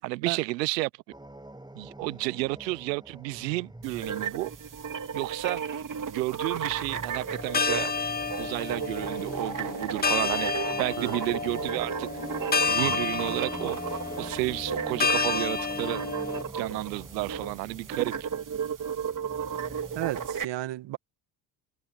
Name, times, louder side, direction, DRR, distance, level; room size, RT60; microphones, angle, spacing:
voice 1, 0.0-0.9 1.7-4.5 5.1-5.6 6.1-7.9 8.4-10.5 10.8-12.1 12.7-13.8 14.2-16.0 16.5-18.3, right 21 dB, 90° right, 0.8 m, -31 dB
sound 1, 1.1-6.2 6.5-20.3, right 1 dB, 10° right, 7.3 m, -46 dB
sound 2, 3.8-20.4, right 7 dB, 40° right, 3.1 m, -34 dB
sound 3, 7.4-16.4, left 5 dB, 20° left, 0.8 m, -30 dB
voice 2, 19.9-21.0, right 16 dB, 60° right, 1.6 m, -33 dB
hypercardioid pair, 65°, 48 cm